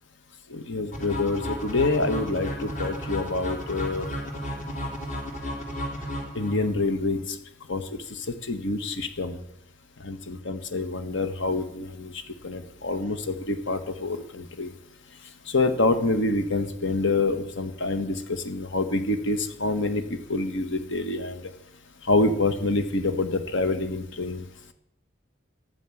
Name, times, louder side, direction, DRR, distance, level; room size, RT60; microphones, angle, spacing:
voice 1, 0.5-4.1 6.3-7.2 7.7-7.8 8.5-9.4 10.0-12.1 12.4-14.7 15.5-21.4 22.1-24.4, left 2 dB, 65° left, 9 dB, 1.6 m, -26 dB
sound 1, 0.9-6.9, equal, 40° left, 3.1 m, -33 dB
13.0 x 9.3 x 9.2 m, 0.79 s
head